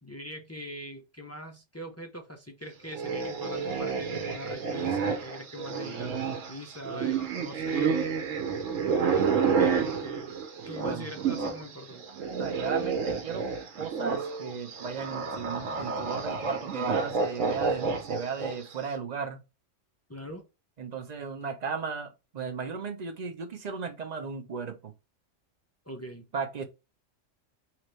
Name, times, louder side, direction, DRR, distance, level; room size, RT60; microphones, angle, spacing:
voice 1, 0.0-8.2 8.8-10.3 10.7-12.0 20.1-20.5 25.9-26.3, equal, 25° left, 0.3 m, -42 dB
sound 1, 2.9-11.6 11.9-18.7, right 5 dB, 85° right, 1.2 m, -30 dB
voice 2, 12.4-13.5 13.8-19.4 20.8-24.9 26.3-26.6, right 5 dB, 45° right, 0.6 m, -36 dB
3.8 x 3.0 x 3.1 m
omnidirectional pair, 1.3 m